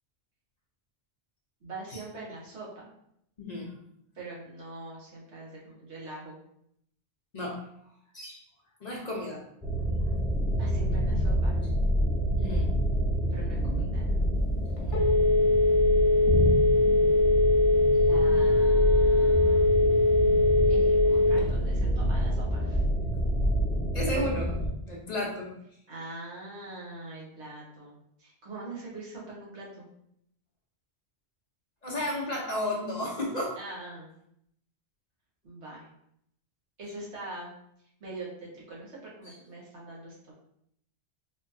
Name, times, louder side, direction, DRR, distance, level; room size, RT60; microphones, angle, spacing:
voice 1, 1.6-2.9 4.1-6.4 10.5-11.6 13.3-14.1 17.9-19.8 20.7-22.8 25.9-29.9 33.5-34.1 35.4-35.9 36.8-37.5 38.0-40.3, right 2 dB, 85° right, -5 dB, 1.6 m, -43 dB
voice 2, 3.4-3.7 7.3-7.6 8.1-8.4 8.8-9.4 12.4-12.7 14.8-15.1 23.9-24.6 24.9-25.5 31.8-33.5 39.3-39.4, left 1 dB, 45° left, -2 dB, 0.7 m, -33 dB
sound 1, 9.6-24.7, equal, ahead, 0.8 m, -27 dB
Telephone, 14.4-21.7, left 2 dB, 70° left, 1.0 m, -22 dB
4.3 x 2.7 x 2.6 m, 0.74 s
omnidirectional pair, 1.1 m